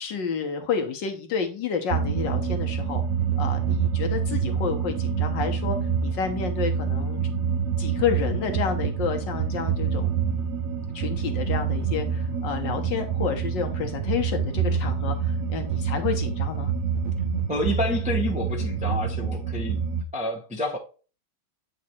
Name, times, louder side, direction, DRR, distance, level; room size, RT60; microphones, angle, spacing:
voice 1, 0.0-3.0 3.4-5.8 6.0-7.2 7.8-10.2 10.9-16.7, left 6 dB, 60° left, 1.4 m, -30 dB
sound 1, 1.9-20.0, right 7 dB, 85° right, 0.7 m, -27 dB
voice 2, 17.5-19.8 20.1-20.8, left 1 dB, 10° right, 0.5 m, -28 dB
8.5 x 3.2 x 4.2 m
omnidirectional pair, 2.4 m